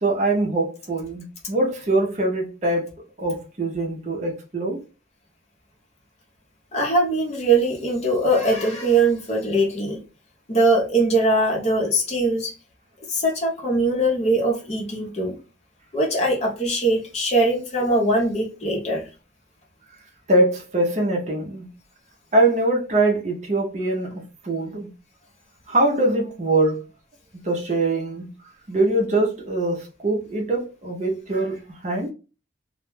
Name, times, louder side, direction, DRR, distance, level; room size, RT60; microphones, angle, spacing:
voice 1, 0.0-2.9 3.2-4.8 20.3-21.7 22.3-24.9 25.7-26.8 27.3-28.3 28.7-32.1, right 2 dB, 40° right, 0.5 m, -23 dB
voice 2, 6.7-10.0 10.5-12.5 13.1-15.4 15.9-19.1, right 2 dB, 35° left, 0.7 m, -21 dB
2.2 x 2.0 x 3.1 m
head